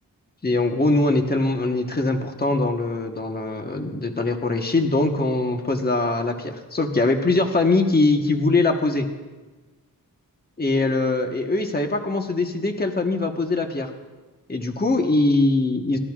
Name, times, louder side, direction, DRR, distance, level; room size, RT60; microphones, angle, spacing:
voice 1, 0.4-9.1 10.6-13.9 14.5-16.0, left 2 dB, 25° left, 4 dB, 1.2 m, -22 dB
29.0 x 14.0 x 2.4 m, 1.2 s
wide cardioid pair, 105°, 35 cm